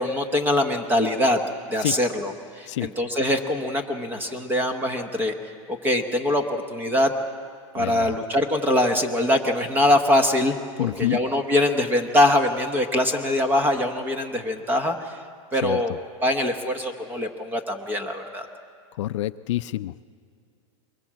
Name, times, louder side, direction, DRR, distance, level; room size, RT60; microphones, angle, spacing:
voice 1, 0.0-1.4 1.7-5.3 5.7-7.1 7.7-10.6 11.0-15.2 15.5-16.0 16.2-18.5, left 1 dB, 10° right, 7 dB, 0.9 m, -23 dB
voice 2, 7.8-8.2 10.8-11.2 15.6-15.8 19.0-20.0, left 15 dB, 65° left, 13 dB, 0.5 m, -27 dB
22.5 x 20.5 x 7.4 m, 2.2 s
supercardioid pair, 165°, 17 cm